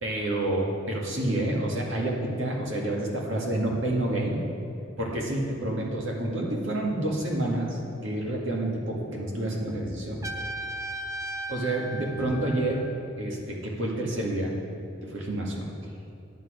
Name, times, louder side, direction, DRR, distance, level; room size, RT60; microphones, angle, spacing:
voice 1, 0.0-4.4 5.0-10.2 11.5-12.8 13.2-14.5 15.0-15.7, right 1 dB, 90° right, -2 dB, 2.0 m, -28 dB
Trumpet, 10.2-13.1, right 1 dB, 15° right, 0.5 m, -36 dB
10.5 x 8.4 x 5.1 m, 2.6 s
head